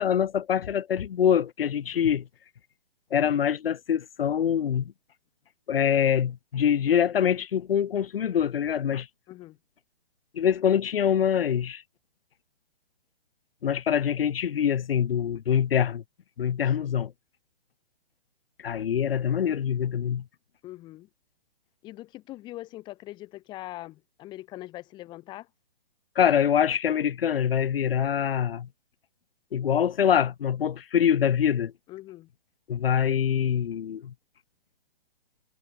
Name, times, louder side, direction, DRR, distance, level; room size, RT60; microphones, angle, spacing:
voice 1, 0.0-2.3 3.1-4.9 5.7-9.1 10.3-11.8 13.6-16.0 16.4-17.1 18.6-20.2 26.2-28.7 29.5-31.7 32.7-34.1, left 8 dB, 80° left, 0.9 m, -24 dB
voice 2, 20.6-21.1 21.8-25.5 31.9-32.3, left 16 dB, 15° left, 2.6 m, -42 dB
hypercardioid pair, 165°, 29 cm